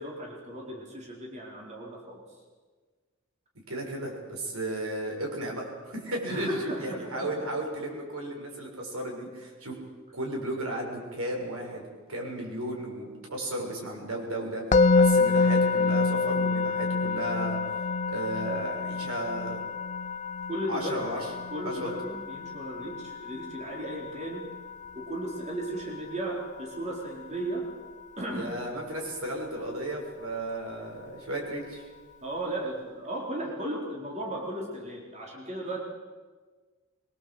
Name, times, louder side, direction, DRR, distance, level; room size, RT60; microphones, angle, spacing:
voice 1, 0.0-2.4 6.3-7.5 20.5-21.0 21.5-24.5 24.9-27.7 28.2-28.5 32.2-35.8, right 1 dB, 35° right, -1 dB, 4.3 m, -35 dB
voice 2, 3.7-6.5 6.8-9.8 10.1-11.8 12.1-17.6 18.1-19.6 20.7-21.3 21.6-21.9 28.3-31.9, right 1 dB, 85° right, 0 dB, 6.9 m, -34 dB
Musical instrument, 14.7-25.8, left 4 dB, 35° left, 0.7 m, -27 dB
24.0 x 22.5 x 8.1 m, 1.4 s
head